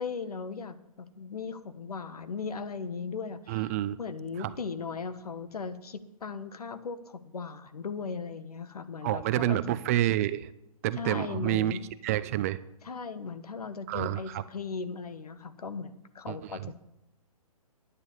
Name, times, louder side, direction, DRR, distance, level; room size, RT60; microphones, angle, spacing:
voice 1, 0.0-3.7 4.0-9.6 11.0-11.8 12.8-16.8, left 5 dB, 75° left, 12 dB, 1.3 m, -37 dB
voice 2, 3.5-4.0 4.4-4.5 9.0-10.5 10.8-12.6 13.9-14.4 16.3-16.4, right 14 dB, 25° right, 15 dB, 0.4 m, -28 dB
10.5 x 9.7 x 7.2 m, 0.84 s
hypercardioid pair, 140°, 19 cm